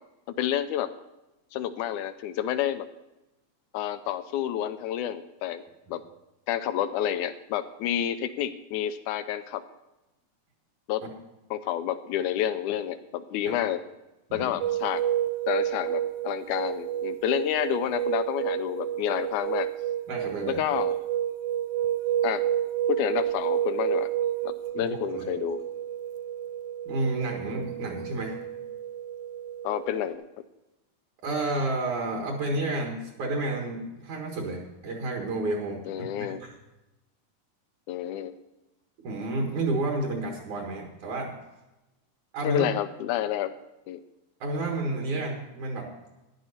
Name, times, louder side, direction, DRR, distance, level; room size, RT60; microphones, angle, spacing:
voice 1, 0.4-0.9 1.5-2.9 3.7-5.6 5.9-6.0 6.5-9.6 10.9-11.0 11.5-13.8 14.3-15.0 15.5-19.7 20.5-20.9 22.2-22.4 22.9-24.1 24.4-25.6 29.6-30.3 35.9-36.4 37.9-38.4 42.4-43.5 43.9-44.0, left 11 dB, 80° left, 12 dB, 1.8 m, -29 dB
sound 1, 14.6-30.1, right 11 dB, 80° right, 1.7 m, -30 dB
voice 2, 20.1-20.6 24.8-24.9 25.1-25.2 26.9-28.4 31.2-35.8 36.2-36.5 39.0-41.3 42.3-42.7 44.4-45.9, right 2 dB, 60° right, 0 dB, 3.0 m, -30 dB
14.0 x 10.5 x 4.2 m, 0.99 s
omnidirectional pair, 3.9 m